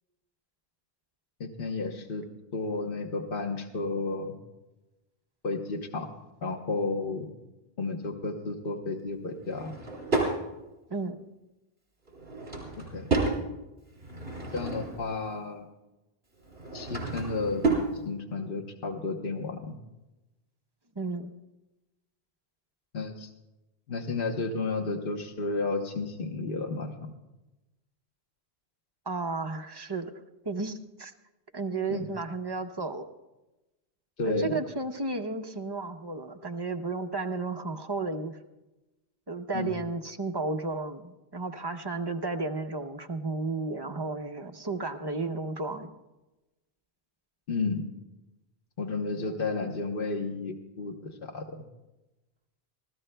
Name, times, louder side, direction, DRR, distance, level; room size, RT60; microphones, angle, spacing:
voice 1, 1.4-2.3 2.5-4.4 5.4-6.1 6.4-7.3 7.8-9.7 12.9-13.1 14.5-15.7 16.7-17.6 18.0-19.8 22.9-23.3 23.9-27.1 31.9-32.1 34.2-34.6 39.5-39.8 47.5-47.8 48.8-51.6, left 3 dB, 60° left, 3 dB, 1.2 m, -32 dB
Drawer open or close / Wood, 9.4-10.4 12.1-13.4 13.9-15.1 16.4-17.9, right 3 dB, 65° right, 3.7 m, -30 dB
voice 2, 21.0-21.3 29.1-30.1 30.4-31.1 31.5-33.1 34.2-38.4 39.3-45.9, right 3 dB, 30° right, 5 dB, 0.6 m, -33 dB
26.5 x 14.5 x 2.2 m, 1.0 s
omnidirectional pair, 1.1 m